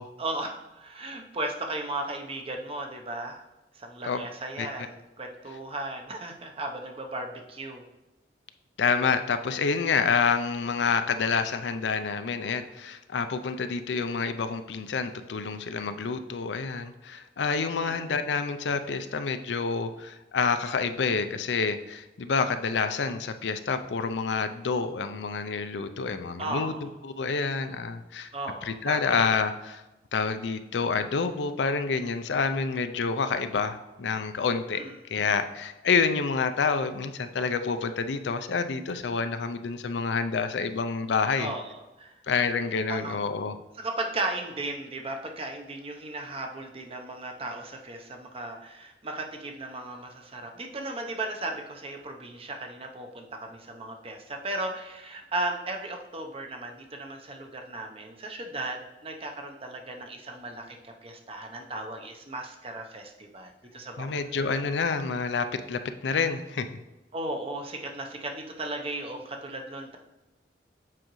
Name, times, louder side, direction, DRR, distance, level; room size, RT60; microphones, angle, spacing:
voice 1, 0.2-3.4 3.7-7.8 17.8-18.0 26.4-26.9 28.3-29.2 34.7-34.9 41.4-42.2 42.9-43.2 43.8-64.5 67.1-70.0, right 2 dB, 35° right, 3 dB, 0.8 m, -36 dB
voice 2, 8.8-26.7 27.0-28.3 28.6-29.8 30.1-34.8 35.1-41.5 42.3-43.5 64.0-66.8, left 5 dB, 80° left, 9 dB, 0.5 m, -28 dB
7.6 x 4.9 x 3.1 m, 1.0 s
head